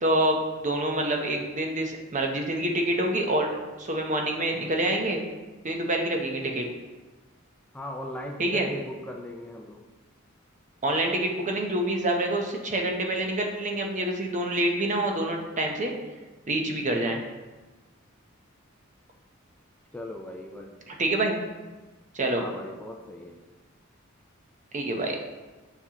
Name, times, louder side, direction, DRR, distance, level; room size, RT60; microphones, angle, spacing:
voice 1, 0.0-3.5 3.8-5.2 5.6-6.7 8.4-8.7 10.8-15.9 16.5-17.2 20.9-21.4 22.1-22.4 24.7-25.2, right 1 dB, 35° right, 2 dB, 0.8 m, -26 dB
voice 2, 7.7-9.8 19.9-20.8 22.3-23.4, left 1 dB, 5° left, 1 dB, 0.3 m, -39 dB
7.3 x 5.3 x 2.9 m, 1.2 s
head